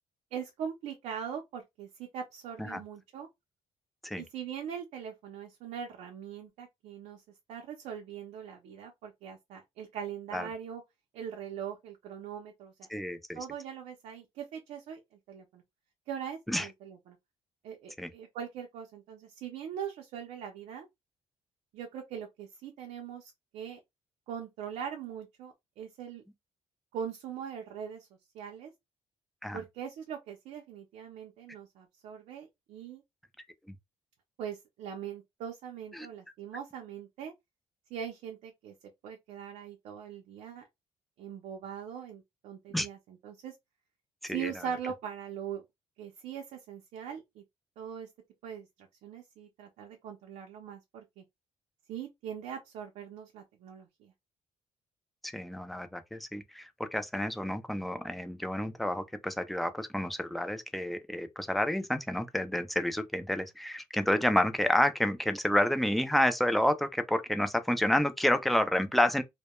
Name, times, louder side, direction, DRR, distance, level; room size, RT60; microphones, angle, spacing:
voice 1, 0.3-3.3 4.2-7.2 7.5-10.8 11.1-12.9 13.3-15.0 15.3-15.6 16.1-17.2 17.6-20.9 21.7-23.8 24.3-26.2 26.9-28.1 28.3-28.7 29.5-33.0 34.4-37.3 37.9-38.7 39.0-40.6 41.2-43.5 44.3-45.6 46.0-47.4 47.8-48.1 48.4-51.2 51.9-54.1, right 8 dB, 85° right, 0.5 m, -41 dB
voice 2, 12.9-13.4 16.5-16.7 18.0-18.1 29.4-29.6 36.0-36.1 42.7-42.9 44.2-44.5 55.2-69.2, left 1 dB, ahead, 0.3 m, -29 dB
2.1 x 2.1 x 2.9 m
cardioid pair, 125°, 11 cm